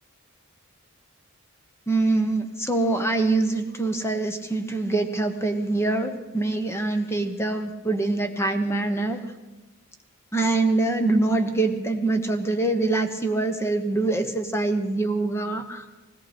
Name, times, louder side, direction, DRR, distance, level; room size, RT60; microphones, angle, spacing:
voice 1, 1.9-9.2 10.3-15.8, right 2 dB, 10° left, 7 dB, 1.0 m, -24 dB
19.5 x 17.5 x 4.3 m, 1.1 s
head